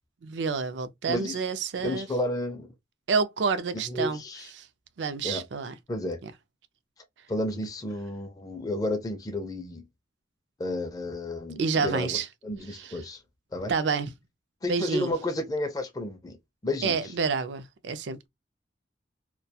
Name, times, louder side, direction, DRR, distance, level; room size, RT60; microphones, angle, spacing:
voice 1, 0.2-2.1 3.1-4.2 5.0-5.7 6.2-6.3 11.6-12.3 12.7-12.9 13.7-14.1 14.7-15.1 16.8-18.3, right 5 dB, 70° right, 0.4 m, -28 dB
voice 2, 1.8-2.7 3.7-4.5 5.2-5.4 5.9-6.2 7.3-9.9 10.6-13.2 13.5-13.7 14.6-16.4 16.6-17.1, left 1 dB, 20° left, 0.4 m, -32 dB
2.3 x 2.2 x 2.7 m
head